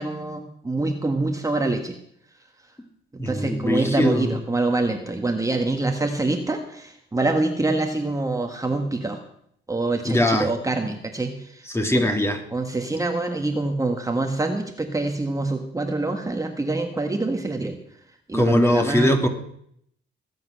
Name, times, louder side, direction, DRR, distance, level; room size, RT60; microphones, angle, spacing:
voice 1, 0.0-1.9 3.1-9.2 9.7-11.7 11.9-12.1 12.5-17.8 18.3-19.2, right 2 dB, 15° right, 4 dB, 1.6 m, -25 dB
voice 2, 3.2-4.3 10.0-10.5 11.7-12.4 18.3-19.3, left 1 dB, 15° left, 5 dB, 2.5 m, -21 dB
19.5 x 7.9 x 6.4 m, 0.69 s
cardioid pair, 90°, 20 cm